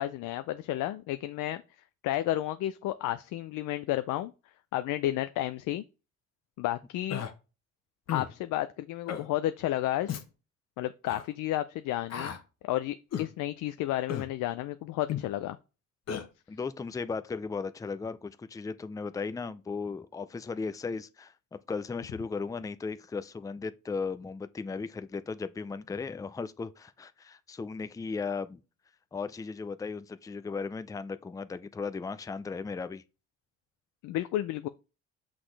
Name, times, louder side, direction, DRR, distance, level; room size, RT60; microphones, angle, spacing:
voice 1, 0.0-1.6 2.0-4.3 4.7-5.8 6.6-7.2 8.1-10.1 10.8-12.4 12.6-15.6 34.0-34.7, left 14 dB, 85° left, 0.5 m, -32 dB
Human voice, 7.1-7.3 8.1-8.3 9.1-9.3 10.1-10.3 11.1-11.2 12.1-12.4 13.1-13.3 14.1-14.3 15.1-15.3 16.1-16.2, left 8 dB, 60° left, 1.0 m, -34 dB
voice 2, 16.5-28.6 29.1-33.0, left 4 dB, 10° left, 0.4 m, -36 dB
6.2 x 6.0 x 3.3 m
cardioid pair, 90°, 30 cm